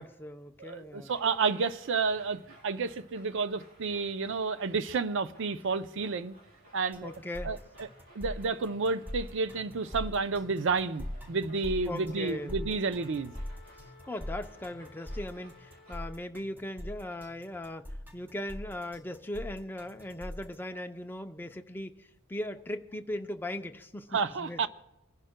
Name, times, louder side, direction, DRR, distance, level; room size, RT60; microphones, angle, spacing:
voice 1, 0.0-1.1 7.0-7.5 11.9-12.6 14.1-24.1 24.4-24.7, left 1 dB, 10° left, 0.5 m, -39 dB
voice 2, 0.6-6.3 6.7-7.1 7.4-7.9 8.1-13.3 24.1-24.7, right 4 dB, 60° right, 0.5 m, -31 dB
sound 1, 1.0-16.0, right 1 dB, 80° right, 4.3 m, -58 dB
sound 2, 6.9-20.5, left 1 dB, 10° right, 1.0 m, -42 dB
Wind instrument woodwind instrument, 12.0-16.4, left 3 dB, 25° left, 1.3 m, -58 dB
26.5 x 11.0 x 2.2 m
head